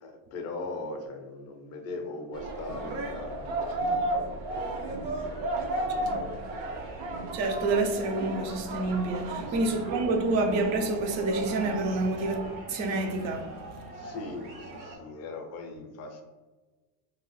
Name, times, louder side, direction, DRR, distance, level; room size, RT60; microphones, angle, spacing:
voice 1, 0.0-4.9 5.2-6.9 9.3-10.2 13.9-16.2, left 3 dB, 35° left, 0.5 m, -41 dB
sound 1, 2.3-12.6, right 2 dB, 60° right, 0.7 m, -34 dB
sound 2, 5.2-15.0, right 2 dB, 80° right, 1.1 m, -46 dB
voice 2, 7.3-12.4 12.7-14.1, right 2 dB, 40° right, 0.4 m, -28 dB
2.8 x 2.4 x 3.1 m
cardioid pair, 145°, 47 cm